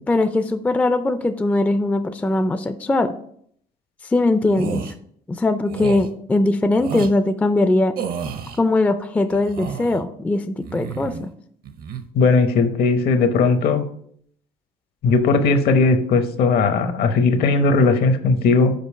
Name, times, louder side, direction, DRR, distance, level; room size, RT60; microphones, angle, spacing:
voice 1, 0.1-3.2 4.1-4.8 5.4-7.9 8.6-11.3, left 2 dB, 10° left, 9 dB, 0.4 m, -20 dB
sound 1, 4.5-4.9 5.7-6.1 6.8-7.1 8.0-8.6 9.3-10.0 10.6-11.3 11.6-12.0, right 7 dB, 60° right, 0.7 m, -31 dB
voice 2, 12.1-13.8 15.0-18.7, left 4 dB, 65° left, 8 dB, 0.9 m, -17 dB
5.3 x 4.9 x 4.8 m, 0.65 s
cardioid pair, 110°, 17 cm